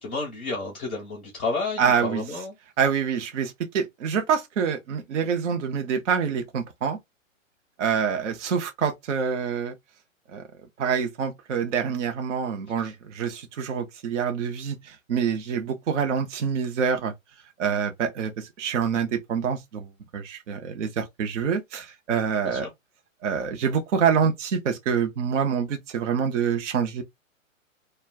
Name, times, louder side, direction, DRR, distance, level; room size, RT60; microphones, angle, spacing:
voice 1, 0.0-2.6 22.4-22.7, left 3 dB, 10° left, 0.3 m, -31 dB
voice 2, 1.8-2.2 2.8-7.0 7.8-9.7 10.3-10.4 10.8-17.1 17.6-22.7 23.2-27.0, right 7 dB, 60° right, 0.7 m, -26 dB
2.4 x 2.2 x 3.3 m
hypercardioid pair, 135°, 41 cm